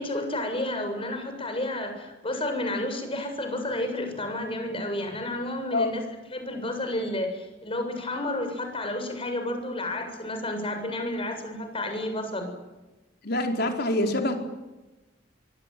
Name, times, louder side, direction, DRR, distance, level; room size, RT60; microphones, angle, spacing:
voice 1, 0.0-6.0 6.3-12.5, left 1 dB, 30° left, 6 dB, 7.3 m, -31 dB
voice 2, 13.2-14.4, left 1 dB, 60° left, 3 dB, 4.6 m, -25 dB
25.0 x 24.5 x 9.4 m, 1.1 s
head